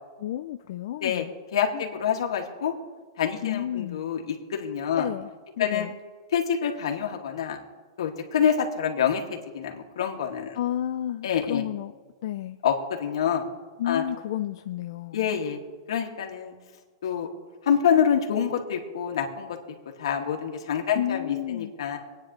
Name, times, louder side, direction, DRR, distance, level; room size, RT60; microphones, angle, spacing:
voice 1, 0.2-1.3 1.7-1.8 3.4-4.0 5.0-5.3 5.6-5.9 10.6-11.9 12.2-12.6 13.8-15.2 20.9-21.7, left 12 dB, 55° left, 7 dB, 0.4 m, -31 dB
voice 2, 1.5-2.7 3.2-5.1 5.6-5.9 6.3-7.6 8.0-10.6 11.2-11.6 12.6-13.5 13.8-14.0 15.1-15.6 15.9-16.5 17.0-17.3 17.6-19.6 20.0-22.0, left 8 dB, 80° left, 2 dB, 2.3 m, -26 dB
26.0 x 9.7 x 3.3 m, 1.4 s
supercardioid pair, 165°, 3 cm